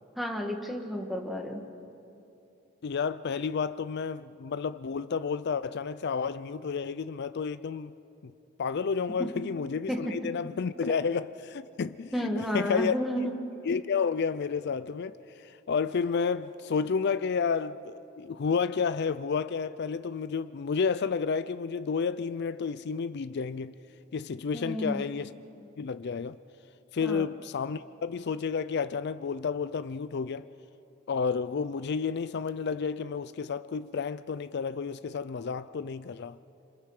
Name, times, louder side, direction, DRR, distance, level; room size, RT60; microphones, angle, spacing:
voice 1, 0.2-1.6 9.9-10.0 12.1-13.3 24.5-25.1 27.0-27.2, equal, ahead, 1.7 m, -31 dB
voice 2, 2.8-7.9 8.2-8.3 8.6-12.9 13.6-23.7 24.1-25.3 25.8-26.4 26.9-30.5 31.1-36.4, left 5 dB, 55° left, 0.4 m, -31 dB
27.0 x 26.5 x 4.9 m
head